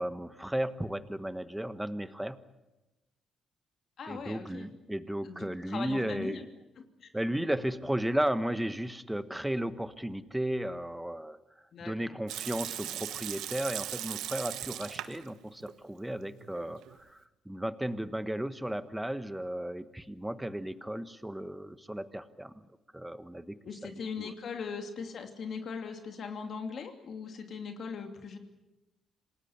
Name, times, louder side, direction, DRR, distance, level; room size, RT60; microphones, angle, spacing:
voice 1, 0.0-2.4 4.1-6.4 7.1-11.4 11.8-22.6 22.9-24.3, right 1 dB, 5° right, 12 dB, 1.3 m, -34 dB
voice 2, 4.0-4.7 5.2-6.4 11.7-11.9 23.6-28.4, left 5 dB, 60° left, 5 dB, 2.9 m, -39 dB
Water tap faucet / Sink (filling or washing) / Liquid, 12.3-15.3 15.6-15.7 16.3-16.9, right 12 dB, 85° right, 1.1 m, -39 dB
27.0 x 19.0 x 8.2 m, 1.0 s
cardioid pair, 90°, 0 cm